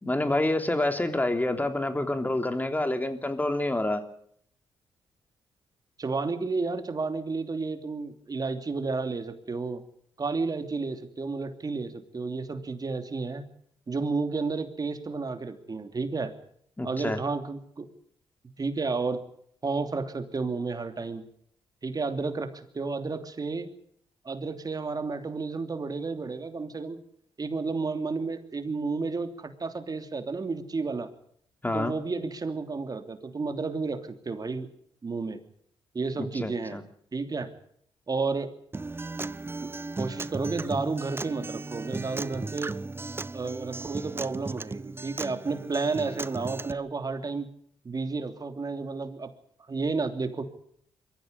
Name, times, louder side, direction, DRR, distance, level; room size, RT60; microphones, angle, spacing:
voice 1, 0.0-4.0 16.8-17.2 31.6-31.9 36.4-36.8, left 1 dB, 15° left, 7 dB, 3.2 m, -27 dB
voice 2, 6.0-9.8 10.2-13.4 13.9-16.3 16.8-17.9 18.6-19.2 19.6-21.3 21.8-23.7 24.2-27.0 27.4-31.1 31.7-34.7 35.0-35.4 35.9-36.8 37.1-37.5 38.1-38.5 39.6-42.8 43.3-47.5 47.8-49.3 49.7-50.4, right 4 dB, 40° right, 7 dB, 3.1 m, -31 dB
Acoustic guitar, 38.7-46.7, right 3 dB, 20° right, 0.8 m, -36 dB
22.5 x 15.0 x 9.7 m, 0.67 s
cardioid pair, 65°, 10 cm